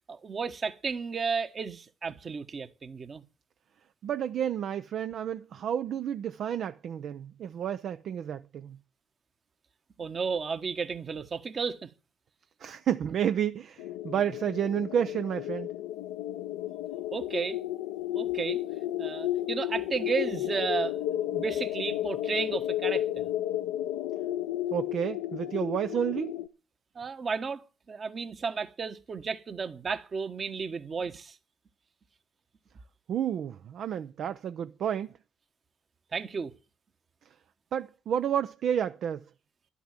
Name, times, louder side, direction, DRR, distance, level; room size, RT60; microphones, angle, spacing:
voice 1, 0.1-3.2 10.0-11.9 13.0-13.1 17.1-17.6 18.1-18.6 19.0-21.0 21.3-23.3 26.9-31.4 36.1-36.5, right 5 dB, 45° right, 1.3 m, -33 dB
voice 2, 4.0-8.8 12.6-15.7 24.7-26.4 33.1-35.1 37.7-39.2, right 9 dB, 60° right, 0.5 m, -30 dB
sound 1, 13.8-26.5, left 13 dB, 80° left, 0.6 m, -33 dB
11.5 x 7.1 x 7.4 m
hypercardioid pair, 50°, 0 cm